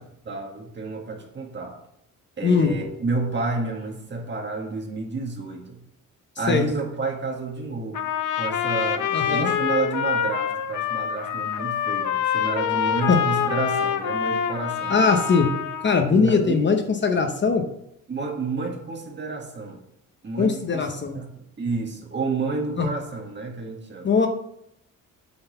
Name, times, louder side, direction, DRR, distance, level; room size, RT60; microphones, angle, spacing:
voice 1, 0.2-1.8 2.4-5.8 6.4-8.1 8.4-14.9 16.1-16.7 18.1-19.8 20.2-20.9 21.1-24.1, right 3 dB, 35° right, 1 dB, 1.7 m, -30 dB
Trumpet, 7.9-16.0, left 8 dB, 65° left, 0.8 m, -26 dB
voice 2, 9.1-9.5 13.1-13.2 14.9-15.5 15.8-17.6 20.4-21.2 22.8-22.9 24.0-24.3, left 5 dB, 35° left, 5 dB, 0.8 m, -20 dB
7.9 x 4.0 x 6.7 m, 0.78 s
cardioid pair, 120°, 33 cm